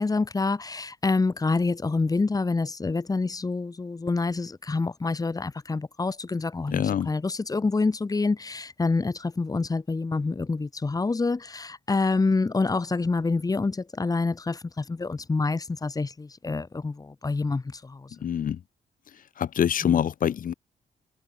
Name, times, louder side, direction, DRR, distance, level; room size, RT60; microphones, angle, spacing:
voice 1, 0.0-18.1 19.8-20.0, left 3 dB, 25° left, 7.6 m, -27 dB
voice 2, 6.7-7.1 18.2-18.6 19.4-20.5, left 9 dB, 60° left, 6.0 m, -25 dB
cardioid pair, 120°, 16 cm